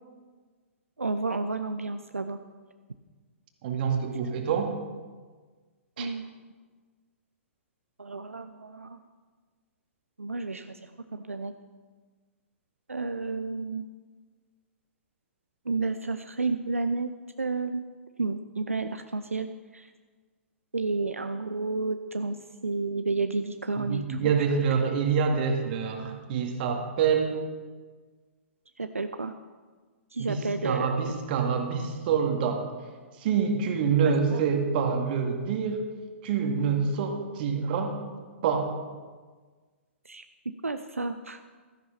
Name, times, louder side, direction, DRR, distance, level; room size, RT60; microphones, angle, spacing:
voice 1, 1.0-2.4 6.0-6.2 8.0-9.0 10.2-11.5 12.9-13.9 15.6-17.1 17.4-17.8 18.2-19.5 19.7-19.9 20.7-22.4 22.6-24.3 28.8-29.3 30.1-31.2 34.0-34.4 40.0-40.2 40.6-41.4, right 3 dB, 85° right, 9 dB, 0.6 m, -31 dB
voice 2, 3.6-4.7 6.0-6.1 23.8-27.4 30.2-32.7 33.2-35.8 36.2-38.0 38.4-38.7, right 6 dB, 45° right, 4 dB, 2.0 m, -26 dB
13.5 x 10.0 x 5.7 m, 1.4 s
figure-of-eight pair, 115°, 7 cm